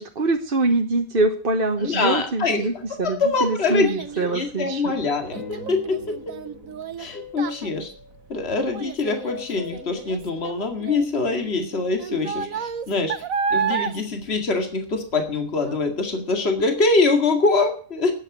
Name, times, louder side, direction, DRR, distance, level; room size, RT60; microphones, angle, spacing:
voice 1, 0.0-4.9, right 2 dB, 45° right, 4 dB, 1.3 m, -24 dB
voice 2, 1.8-2.7 3.0-3.9 4.2-6.2 7.0-7.9 8.3-13.1 13.5-18.1, left 3 dB, 50° left, 5 dB, 2.4 m, -24 dB
Child speech kid speaking, 2.7-15.3 15.7-16.1 16.6-16.7, right 6 dB, 90° right, 1.5 m, -32 dB
sound 1, 5.0-8.9 9.3-11.3, left 4 dB, 80° left, 4.1 m, -42 dB
12.5 x 9.2 x 8.6 m, 0.43 s
omnidirectional pair, 1.4 m